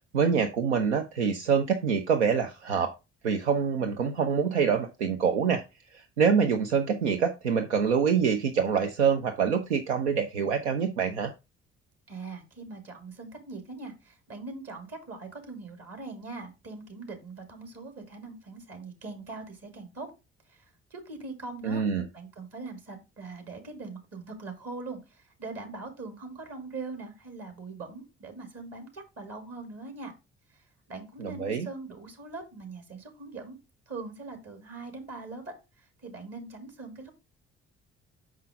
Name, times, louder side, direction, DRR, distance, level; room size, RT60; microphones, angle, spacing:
voice 1, 0.1-2.9 3.2-5.6 6.2-11.3 21.6-22.1 31.2-31.7, right 6 dB, 85° right, 6 dB, 0.6 m, -25 dB
voice 2, 12.1-20.1 20.5-21.8 22.1-30.1 30.5-33.6 33.9-37.1, right 3 dB, 45° right, 4 dB, 2.4 m, -42 dB
6.0 x 5.5 x 3.6 m, 0.26 s
figure-of-eight pair, 45°, 33 cm